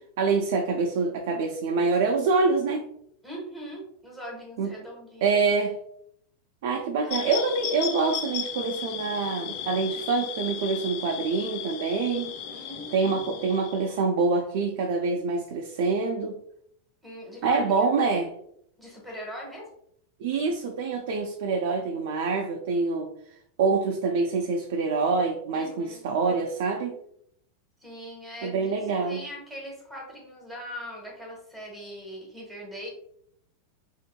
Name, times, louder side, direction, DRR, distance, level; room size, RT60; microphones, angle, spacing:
voice 1, 0.2-2.9 4.6-4.7 5.2-5.8 6.6-12.3 12.9-16.4 17.4-18.3 20.2-23.1 23.6-26.9 28.4-29.2, right 4 dB, 60° right, 2 dB, 0.5 m, -26 dB
voice 2, 3.2-5.4 7.0-7.3 12.5-13.2 17.0-17.9 18.8-19.7 25.5-26.0 27.8-32.9, equal, 5° right, -2 dB, 1.0 m, -41 dB
sound 1, 7.1-13.9, left 8 dB, 50° left, 0.9 m, -35 dB
5.2 x 2.7 x 2.2 m, 0.69 s
supercardioid pair, 170°, 0 cm